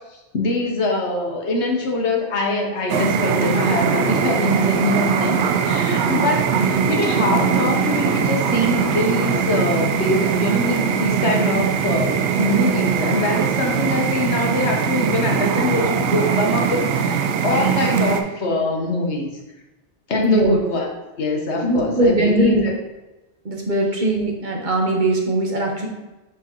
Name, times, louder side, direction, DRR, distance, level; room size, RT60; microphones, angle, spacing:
voice 1, 0.1-19.3 20.1-20.9 21.2-22.7, left 2 dB, 85° left, 1 dB, 1.3 m, -23 dB
sound 1, 2.9-18.2, right 6 dB, 90° right, 0.9 m, -21 dB
voice 2, 20.2-20.6 21.6-22.7 23.4-25.9, right 1 dB, 45° right, 0 dB, 1.1 m, -20 dB
6.8 x 4.7 x 3.0 m, 1.1 s
omnidirectional pair, 1.1 m